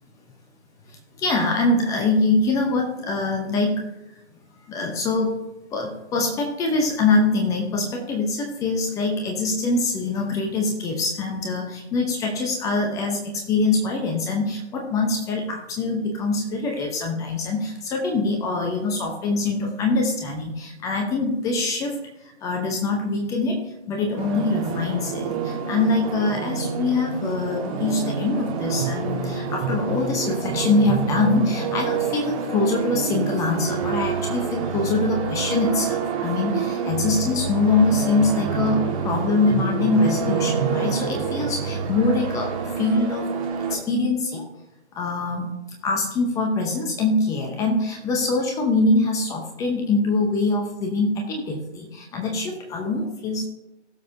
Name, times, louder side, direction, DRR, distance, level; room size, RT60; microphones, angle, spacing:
voice 1, 0.9-3.9 4.7-5.4 5.7-43.3 43.7-44.5 45.0-45.5 45.8-53.5, left 3 dB, 10° left, 2 dB, 0.8 m, -24 dB
sound 1, 24.2-43.8, right 5 dB, 30° right, 1.7 m, -27 dB
17.0 x 7.1 x 2.7 m, 0.97 s
figure-of-eight pair, 140°, 35 cm